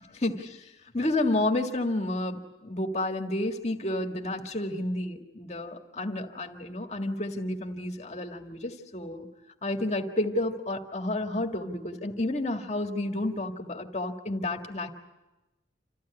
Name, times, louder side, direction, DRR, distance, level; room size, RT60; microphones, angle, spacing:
voice 1, 0.2-0.6 0.9-9.3 9.6-14.9, left 1 dB, 40° left, 3 dB, 1.9 m, -30 dB
27.5 x 15.0 x 9.7 m, 1.0 s
head